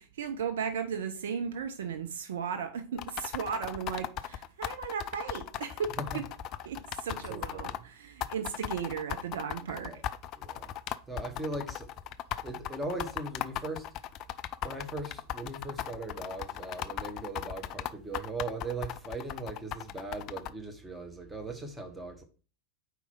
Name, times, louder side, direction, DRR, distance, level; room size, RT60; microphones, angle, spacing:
voice 1, 0.0-6.2 6.6-10.0, right 7 dB, 60° right, 0.6 m, -36 dB
sound 1, 3.0-7.8 8.2-20.5, left 11 dB, 35° left, 0.3 m, -37 dB
voice 2, 7.3-7.8 9.7-10.0 10.4-10.7 11.1-11.9 12.4-13.9 14.6-22.2, right 2 dB, 10° right, 1.2 m, -39 dB
4.6 x 4.4 x 5.4 m
figure-of-eight pair, 90°, 0 cm